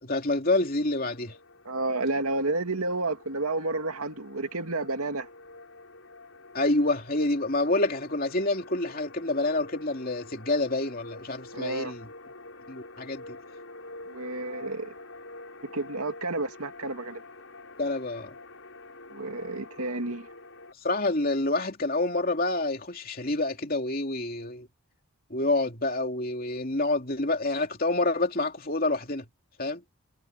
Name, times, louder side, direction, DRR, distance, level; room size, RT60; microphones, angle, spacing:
voice 1, 0.0-1.4 6.5-12.1 12.7-13.4 17.8-18.3 20.8-24.7 25.3-29.2 29.6-29.8, left 2 dB, 40° left, 2.9 m, -27 dB
sound 1, 0.8-20.7, left 2 dB, 65° left, 5.8 m, -47 dB
voice 2, 1.7-5.3 11.5-11.9 14.1-14.9 15.7-17.2 19.1-20.3, right 2 dB, 85° right, 2.5 m, -30 dB
head